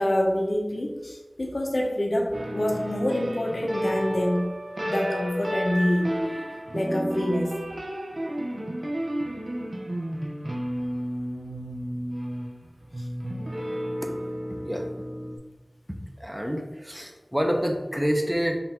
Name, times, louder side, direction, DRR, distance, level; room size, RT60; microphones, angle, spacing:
voice 1, 0.0-4.5 4.9-6.1 6.7-7.5 13.0-13.1, left 1 dB, 80° left, -1 dB, 0.7 m, -26 dB
sound 1, 2.3-15.4, equal, 70° right, 0.6 m, -32 dB
voice 2, 15.9-18.6, equal, 10° right, 2 dB, 0.6 m, -28 dB
3.9 x 2.6 x 4.2 m, 1.2 s
wide cardioid pair, 40°, 0 cm